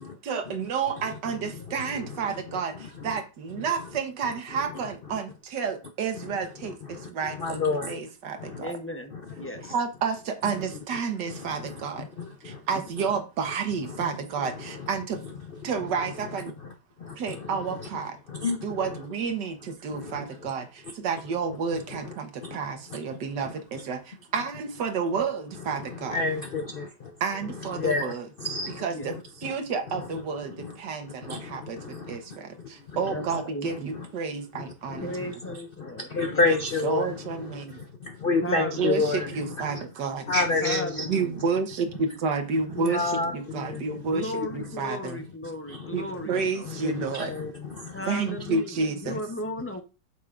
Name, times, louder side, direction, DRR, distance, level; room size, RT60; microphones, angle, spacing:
voice 1, 0.2-8.7 9.7-12.1 12.4-15.2 15.6-16.6 17.1-18.2 18.6-26.2 27.2-28.3 28.8-35.3 36.4-36.6 36.8-37.8 38.5-40.3 41.1-45.2 45.9-47.3 48.1-49.2, right 5 dB, 70° right, 1.7 m, -30 dB
voice 2, 7.4-8.0 8.4-8.6 9.1-9.5 11.4-11.8 12.2-12.6 13.9-14.0 17.0-17.5 18.3-18.7 19.9-20.5 22.1-22.2 22.4-22.6 22.9-23.0 25.9-27.1 27.7-28.1 28.4-28.8 29.1-29.2 30.6-30.7 31.2-32.2 32.9-33.0 33.9-34.1 34.9-37.1 37.7-39.3 39.6-39.8 40.3-41.1 42.9-44.0 45.7-46.2 46.7-48.1, left 3 dB, 85° left, 0.4 m, -29 dB
voice 3, 8.6-9.7 28.9-29.1 33.1-33.7 35.0-36.5 38.4-39.1 40.6-41.4 42.7-43.0 43.3-43.4 44.1-46.7 47.9-49.8, left 1 dB, 15° left, 0.4 m, -36 dB
8.4 x 7.2 x 2.5 m
omnidirectional pair, 1.9 m